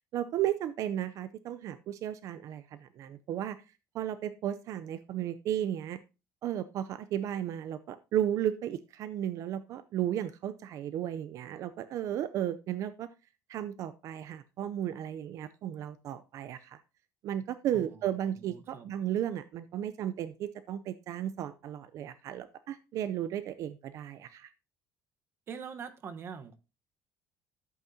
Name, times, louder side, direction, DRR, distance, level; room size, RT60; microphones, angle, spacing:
voice 1, 0.1-3.6 3.9-6.0 6.4-13.1 13.5-16.8 17.2-24.5, right 11 dB, 55° right, 0.5 m, -34 dB
voice 2, 17.7-18.9 25.5-26.6, right 6 dB, 40° right, 1.1 m, -44 dB
12.0 x 8.2 x 2.8 m
cardioid pair, 145°, 6 cm